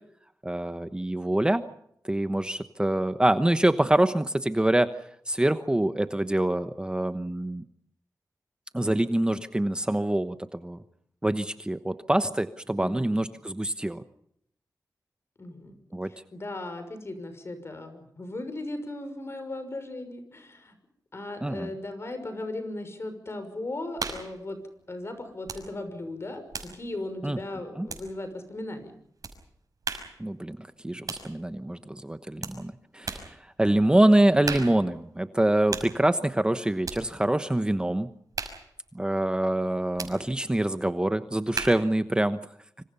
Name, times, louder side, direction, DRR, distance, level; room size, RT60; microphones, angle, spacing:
voice 1, 0.4-1.6 2.0-4.9 5.3-7.6 8.7-10.8 11.2-14.0 15.9-16.1 21.4-21.7 27.2-27.4 27.8-27.9 30.2-38.1 38.9-42.4, right 1 dB, 15° right, 10 dB, 1.1 m, -25 dB
voice 2, 12.8-13.2 15.4-15.8 16.1-20.8 21.1-24.6 24.9-28.9, left 2 dB, 40° left, 9 dB, 6.2 m, -37 dB
sound 1, 24.0-24.4 25.4-25.7 26.0-28.4 29.2-29.4 29.8-30.2 31.1-31.3 32.4-32.6 33.0-33.3 34.4-34.9 35.7-36.0 36.8-37.1 38.3-38.7 40.0-40.2 41.5-41.9, right 4 dB, 65° right, 5.6 m, -36 dB
26.5 x 26.0 x 5.6 m, 0.72 s
wide cardioid pair, 95°, 6 cm